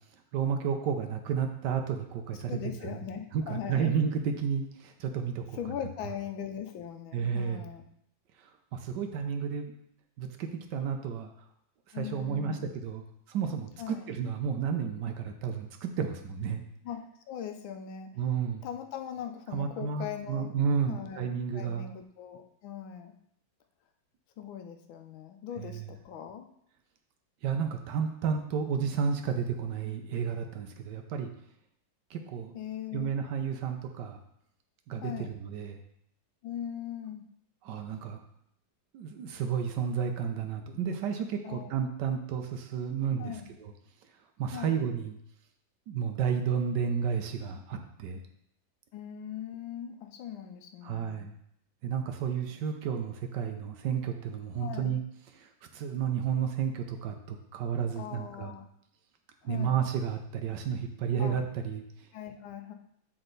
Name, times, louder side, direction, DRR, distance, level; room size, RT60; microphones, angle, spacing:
voice 1, 0.3-3.0 3.3-5.6 7.1-7.7 8.4-9.7 10.2-11.3 11.9-13.0 13.3-16.6 18.2-18.6 19.5-21.9 25.6-25.9 27.4-31.3 32.1-32.5 32.9-34.2 34.9-35.8 37.6-38.2 38.9-43.7 44.4-45.2 45.9-48.2 50.8-51.3 51.8-55.0 55.4-58.5 59.4-62.1, right 7 dB, 70° right, 5 dB, 1.2 m, -32 dB
voice 2, 2.5-3.9 5.5-7.8 11.9-12.6 13.8-14.1 16.8-18.1 18.6-20.6 20.9-23.1 24.4-26.5 32.5-33.1 35.0-35.3 36.4-37.3 41.4-41.7 43.2-43.5 44.5-44.8 48.9-51.3 54.6-55.0 58.0-58.7 59.4-59.8 61.2-61.4 62.1-62.7, left 9 dB, 90° left, 6 dB, 1.5 m, -40 dB
8.0 x 4.4 x 3.9 m, 0.72 s
omnidirectional pair, 2.1 m